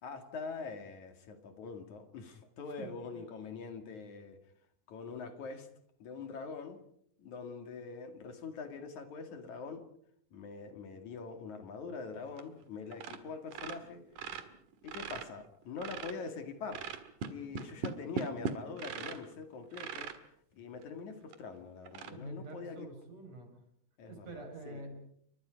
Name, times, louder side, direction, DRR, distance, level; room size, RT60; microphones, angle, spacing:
voice 1, 0.0-4.4 4.9-5.7 6.0-6.8 7.2-9.8 10.3-14.0 14.8-16.8 17.3-20.1 20.5-22.9 24.0-24.8, left 4 dB, 65° left, 7 dB, 3.5 m, -44 dB
Spider Call, 12.3-12.6 12.9-13.2 13.5-16.3 16.7-19.3 19.7-20.2 20.8-20.9 21.3-21.4 21.9-22.1, right 6 dB, 75° right, 3.2 m, -40 dB
voice 2, 22.1-23.5 24.1-25.0, right 1 dB, 55° right, 4 dB, 6.8 m, -46 dB
29.5 x 24.0 x 5.2 m, 0.71 s
omnidirectional pair, 3.7 m